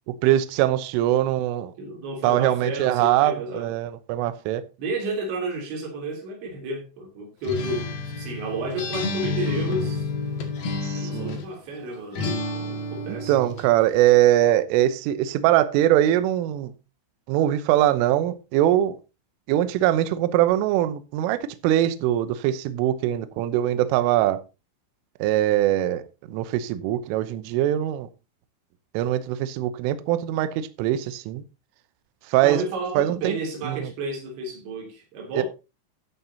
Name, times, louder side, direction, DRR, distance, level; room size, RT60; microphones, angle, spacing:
voice 1, 0.1-1.7 2.2-4.6 10.8-11.4 13.1-16.7 17.3-19.0 19.5-24.4 25.2-26.0 26.3-28.1 28.9-31.4 32.3-32.6 33.0-33.4 33.7-33.9, right 13 dB, 80° right, 3.3 m, -22 dB
voice 2, 1.8-3.7 4.8-10.1 11.0-13.3 32.4-35.4, right 2 dB, 60° right, 5.3 m, -31 dB
Acoustic guitar, 7.4-11.6 12.2-13.7, left 3 dB, 55° left, 3.4 m, -30 dB
12.0 x 11.0 x 2.8 m
omnidirectional pair, 6.0 m